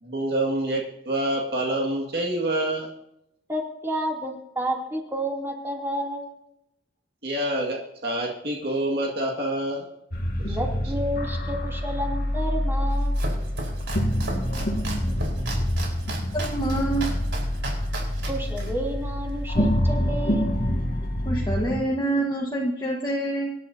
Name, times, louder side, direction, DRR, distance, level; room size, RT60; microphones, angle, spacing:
voice 1, 0.0-2.9 7.2-9.9 10.4-10.6, right 1 dB, 60° right, -1 dB, 2.1 m, -27 dB
voice 2, 3.5-6.3 10.5-13.2 18.3-20.5, equal, 15° right, -2 dB, 2.9 m, -30 dB
sound 1, 10.1-21.8, equal, 50° left, 1.8 m, -26 dB
Domestic sounds home sounds, 12.8-19.7, right 2 dB, 80° right, 4.4 m, -36 dB
voice 3, 16.3-17.1 21.2-23.5, right 2 dB, 25° left, -2 dB, 1.4 m, -26 dB
26.0 x 11.5 x 2.8 m, 0.83 s
head